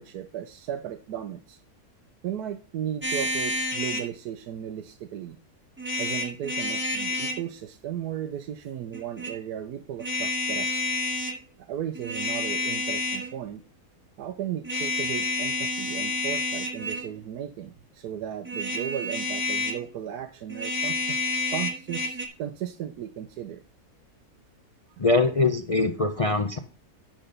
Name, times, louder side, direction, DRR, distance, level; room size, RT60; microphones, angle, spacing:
voice 1, 0.0-1.6 2.2-5.4 6.0-10.8 11.6-13.6 14.2-21.2 21.5-23.6 25.0-25.1, right 10 dB, 80° right, 7 dB, 1.2 m, -35 dB
sound 1, 3.0-4.1 5.8-7.4 8.9-9.3 10.0-11.4 11.9-13.3 14.6-17.1 18.4-19.8 20.5-22.3, left 2 dB, 10° right, 1.1 m, -29 dB
voice 2, 25.0-26.6, left 3 dB, 55° left, 6 dB, 0.3 m, -23 dB
10.5 x 3.9 x 6.5 m, 0.36 s
omnidirectional pair, 1.7 m